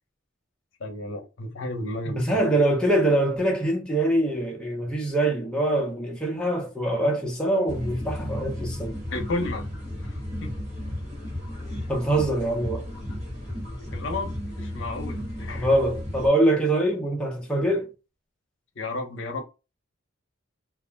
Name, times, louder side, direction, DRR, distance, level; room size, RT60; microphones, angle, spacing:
voice 1, 0.8-2.4 9.1-9.7 10.0-10.5 11.7-11.9 13.9-15.7 18.8-19.4, left 2 dB, 65° left, 0.6 m, -33 dB
voice 2, 2.2-9.0 11.9-12.9 15.5-17.9, right 1 dB, 5° left, 0.5 m, -24 dB
sound 1, 7.7-16.3, left 1 dB, 30° right, 1.2 m, -34 dB
2.3 x 2.0 x 3.2 m
head